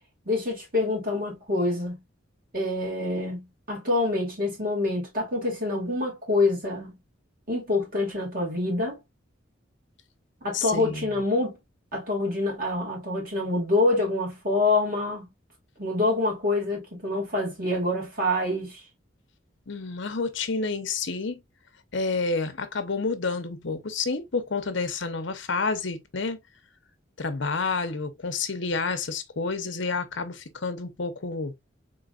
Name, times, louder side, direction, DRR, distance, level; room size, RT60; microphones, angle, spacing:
voice 1, 0.3-2.0 2.5-6.9 7.5-9.0 10.4-11.6 11.9-15.3 15.8-18.8, left 2 dB, 50° right, 2.3 m, -26 dB
voice 2, 10.5-11.1 19.7-21.4 21.9-26.4 27.2-31.5, left 4 dB, 65° left, 0.8 m, -29 dB
3.9 x 3.9 x 2.5 m
head